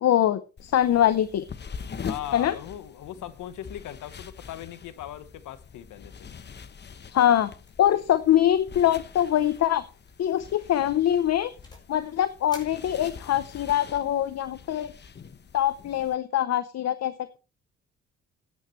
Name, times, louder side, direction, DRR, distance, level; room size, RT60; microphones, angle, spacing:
voice 1, 0.0-1.4 2.3-2.5 7.1-7.5 7.8-9.8 10.2-11.5 11.9-14.9 15.5-17.1, left 11 dB, 55° left, 0.8 m, -23 dB
sound 1, 0.6-16.2, left 6 dB, 35° left, 1.0 m, -43 dB
voice 2, 2.0-6.3, left 11 dB, 80° left, 1.2 m, -39 dB
sound 2, 7.7-8.0 8.2-8.5 8.8-8.9 9.4-9.7 10.1-10.3 10.8-12.0 12.5-13.5, left 1 dB, 15° left, 5.1 m, -51 dB
15.5 x 9.8 x 3.1 m
cardioid pair, 90°, 30 cm